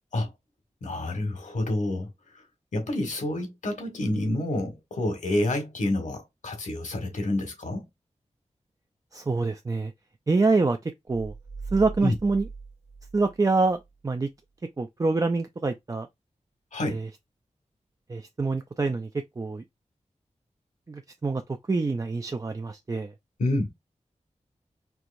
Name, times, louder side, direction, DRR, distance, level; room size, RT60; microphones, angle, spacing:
voice 1, 0.8-2.1 2.7-7.8 12.0-12.2 16.7-17.0 23.4-23.7, left 1 dB, 85° left, 1.5 m, -28 dB
voice 2, 9.1-9.9 10.3-11.3 11.7-12.5 13.1-14.3 14.8-16.1 16.8-17.1 18.1-19.6 20.9-21.4 21.7-23.1, right 3 dB, 30° right, 0.4 m, -26 dB
sound 1, 11.1-13.9, right 4 dB, 50° right, 1.0 m, -40 dB
4.6 x 2.9 x 2.6 m
wide cardioid pair, 80°, 12 cm